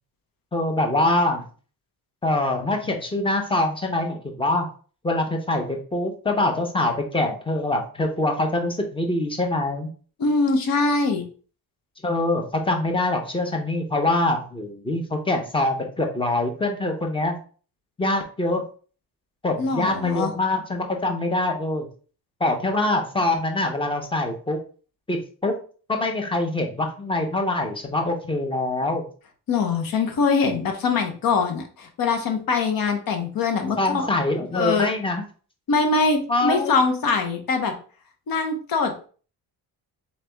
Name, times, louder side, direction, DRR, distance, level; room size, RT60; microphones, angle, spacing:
voice 1, 0.5-1.4 2.2-4.7 5.0-9.9 12.0-17.4 18.0-18.6 19.4-21.9 22.4-24.6 25.1-25.5 25.9-29.1 33.8-35.2 36.3-36.7, left 2 dB, 15° left, 3 dB, 0.8 m, -24 dB
voice 2, 10.2-11.2 19.6-20.3 29.5-34.1 34.5-34.9 35.7-37.7 38.3-39.1, left 4 dB, 60° left, 4 dB, 1.1 m, -23 dB
4.0 x 3.3 x 3.3 m, 0.39 s
cardioid pair, 130°, 39 cm